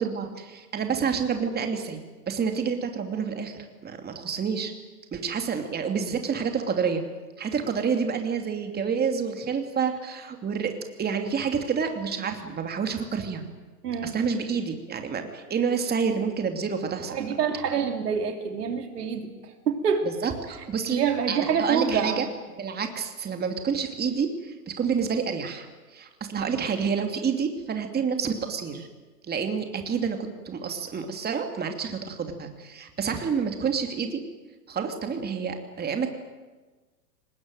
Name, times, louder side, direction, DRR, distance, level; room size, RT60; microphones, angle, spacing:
voice 1, 0.0-2.0 2.3-4.7 5.1-7.0 7.4-10.7 11.0-13.4 14.0-17.2 20.2-22.3 22.5-28.9 29.3-30.2 30.4-34.2 34.7-36.1, right 6 dB, 20° right, 5 dB, 2.8 m, -28 dB
voice 2, 13.8-14.2 17.1-20.1 20.9-22.2, right 6 dB, 70° right, 5 dB, 3.2 m, -26 dB
24.0 x 20.5 x 9.2 m, 1.3 s
hypercardioid pair, 105°, 48 cm